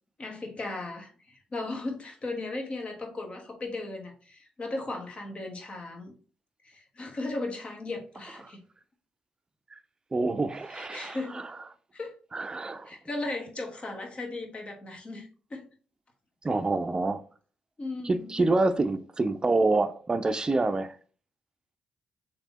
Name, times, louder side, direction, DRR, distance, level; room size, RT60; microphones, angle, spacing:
voice 1, 0.2-6.1 6.6-8.6 10.7-11.4 11.9-12.1 12.8-15.7 17.8-18.5, left 2 dB, 40° left, 1.2 m, -36 dB
voice 2, 10.1-11.4 12.3-12.9 16.4-17.2 18.0-21.0, right 2 dB, 30° right, 0.5 m, -27 dB
3.3 x 2.8 x 4.0 m
supercardioid pair, 55°, 3 cm